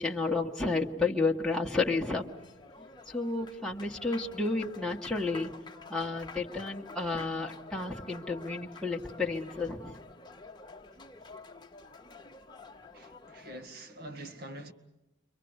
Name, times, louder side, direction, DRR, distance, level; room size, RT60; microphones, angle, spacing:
voice 1, 0.0-2.2 3.1-5.5 5.9-10.0, left 3 dB, 5° left, 1.4 m, -31 dB
Applause, 1.9-13.7, left 3 dB, 25° left, 1.2 m, -49 dB
voice 2, 12.9-14.7, right 1 dB, 55° right, 1.9 m, -45 dB
30.0 x 24.5 x 8.0 m
head